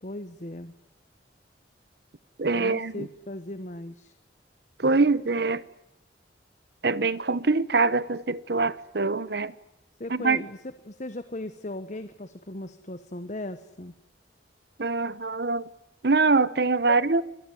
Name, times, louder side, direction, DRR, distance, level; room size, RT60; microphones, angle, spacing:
voice 1, 0.0-0.7 2.5-4.1 10.0-10.6 10.8-13.9 16.8-17.0, left 1 dB, 40° left, 1.1 m, -37 dB
voice 2, 2.4-3.1 4.8-5.6 6.8-9.5 10.1-10.5 14.8-15.7 16.0-17.2, right 3 dB, 60° right, 0.9 m, -24 dB
26.0 x 21.0 x 9.7 m
head